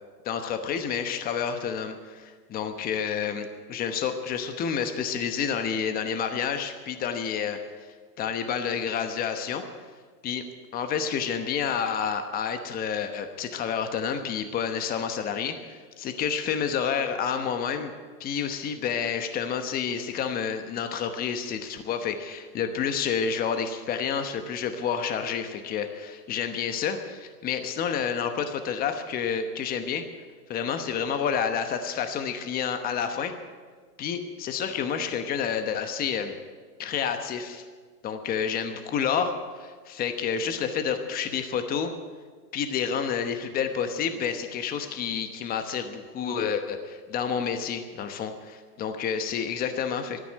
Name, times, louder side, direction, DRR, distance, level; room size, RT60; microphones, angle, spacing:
voice 1, 0.2-7.6 8.2-9.6 10.2-10.4 10.7-17.9 18.2-30.0 30.5-33.3 34.0-36.4 36.8-37.6 38.0-41.9 42.5-50.2, left 7 dB, 20° left, 7 dB, 1.0 m, -29 dB
13.5 x 9.6 x 9.3 m, 1.5 s
hypercardioid pair, 135°, 46 cm